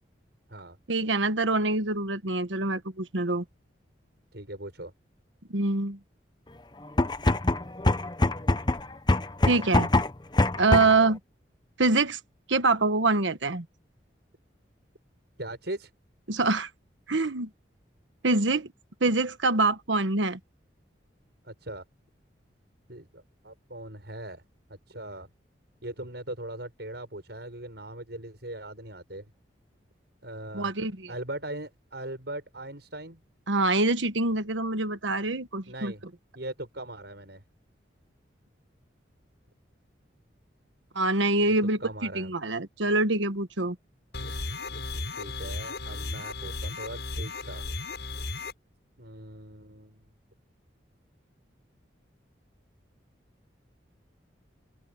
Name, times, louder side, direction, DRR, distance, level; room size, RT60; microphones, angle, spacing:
voice 1, 0.9-3.4 5.5-6.0 9.5-9.9 10.6-11.2 11.8-12.2 12.5-13.6 16.3-16.7 17.1-17.5 18.2-18.7 19.0-20.4 30.5-31.1 33.5-35.9 40.9-41.8 42.1-43.7, right 3 dB, 85° right, 1.4 m, -25 dB
voice 2, 4.3-4.9 15.4-15.9 21.4-21.8 22.9-24.4 24.7-25.3 25.8-29.2 30.2-30.7 31.1-33.2 35.7-36.1 36.3-37.4 41.4-42.3 45.1-47.7 49.0-50.2, right 1 dB, 65° right, 6.6 m, -40 dB
sound 1, 6.8-11.1, left 2 dB, 25° left, 0.8 m, -24 dB
sound 2, 44.1-48.5, left 2 dB, 70° left, 6.2 m, -35 dB
open air
head